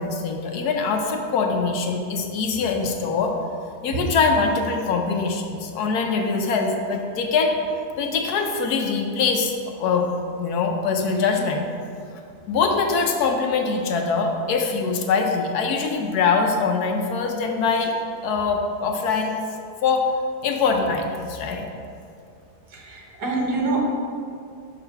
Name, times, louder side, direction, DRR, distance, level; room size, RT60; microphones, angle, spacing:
voice 1, 0.0-3.3 3.8-7.6 8.0-10.1 10.4-11.7 12.5-17.9 18.2-19.4 19.8-20.1 20.4-21.7, left 4 dB, 75° left, 3 dB, 1.2 m, -23 dB
voice 2, 22.7-23.8, right 3 dB, 80° right, -2 dB, 1.8 m, -26 dB
5.8 x 4.9 x 5.5 m, 2.4 s
omnidirectional pair, 1.7 m